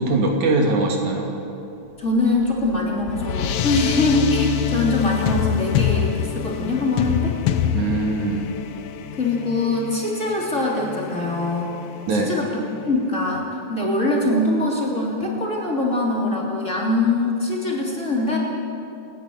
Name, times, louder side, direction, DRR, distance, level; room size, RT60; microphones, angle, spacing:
voice 1, 0.0-1.3 7.8-8.5 12.1-12.4, right 2 dB, 70° right, 1 dB, 3.9 m, -21 dB
voice 2, 2.0-7.3 9.2-11.7 12.1-18.4, left 2 dB, 25° left, -3 dB, 3.3 m, -23 dB
sound 1, 2.2-12.9, left 10 dB, 70° left, 1.5 m, -26 dB
29.0 x 11.0 x 9.5 m, 3.0 s
omnidirectional pair, 3.6 m